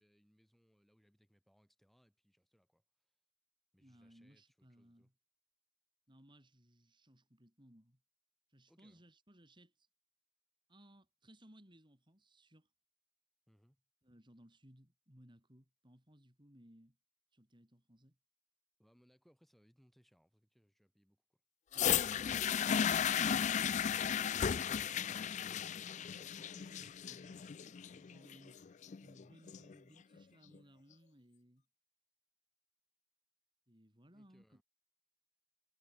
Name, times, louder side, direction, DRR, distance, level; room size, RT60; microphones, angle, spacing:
voice 1, 0.0-3.1 3.7-5.1 8.7-9.0 13.5-13.8 18.8-21.4 34.1-34.6, equal, ahead, 7.4 m, -72 dB
voice 2, 3.8-5.1 6.1-8.0 8.5-9.9 10.7-12.7 14.0-17.0 17.3-18.2 24.7-25.2 26.0-28.6 29.0-31.7 33.7-34.6, equal, 25° right, 7.0 m, -63 dB
sound 1, 21.7-29.7 30.5-30.6, left 8 dB, 40° left, 0.4 m, -35 dB
head